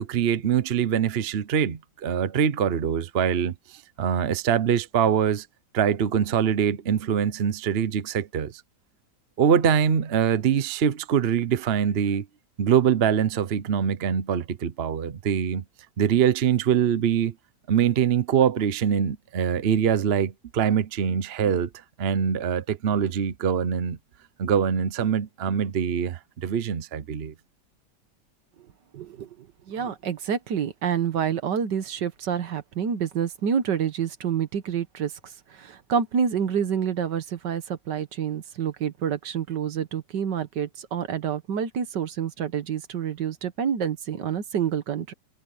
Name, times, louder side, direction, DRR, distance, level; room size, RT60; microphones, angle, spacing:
voice 1, 0.0-3.5 4.0-5.5 5.7-8.6 9.4-12.3 12.6-15.6 16.0-17.3 17.7-21.7 22.0-24.0 24.4-27.3, right 8 dB, 45° right, 0.9 m, -23 dB
voice 2, 28.9-45.1, right 8 dB, 75° right, 1.8 m, -28 dB
omnidirectional pair, 1.9 m